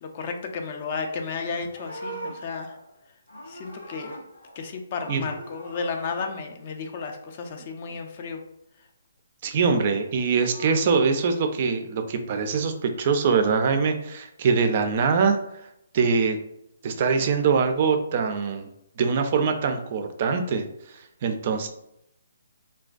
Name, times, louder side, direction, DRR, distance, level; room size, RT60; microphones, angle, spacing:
voice 1, 0.0-2.8 3.5-4.1 4.6-8.4, left 5 dB, 40° left, 5 dB, 0.3 m, -33 dB
Livestock farm animals working animals, 1.2-4.6 4.9-6.2 10.0-11.2, right 1 dB, 85° left, 0.6 m, -42 dB
voice 2, 9.4-15.4 15.9-16.4 16.8-18.7 19.0-20.7 21.2-21.7, right 5 dB, 40° right, 6 dB, 0.3 m, -23 dB
2.4 x 2.2 x 2.3 m, 0.81 s
hypercardioid pair, 150°, 0 cm